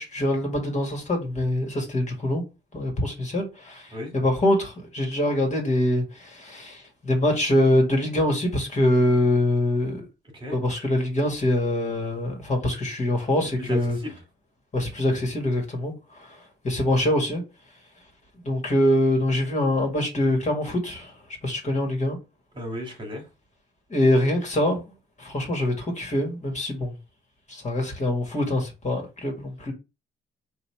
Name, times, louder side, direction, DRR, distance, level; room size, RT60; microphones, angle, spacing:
voice 1, 0.0-2.4 2.7-10.0 10.5-14.0 14.7-16.4 16.6-17.4 18.4-21.1 21.4-22.2 23.9-24.8 25.2-26.9 27.5-29.7, left 1 dB, 35° left, 1.9 m, -24 dB
voice 2, 22.6-23.2, left 1 dB, 25° right, 1.9 m, -34 dB
3.9 x 2.8 x 4.7 m
cardioid pair, 90°, 20 cm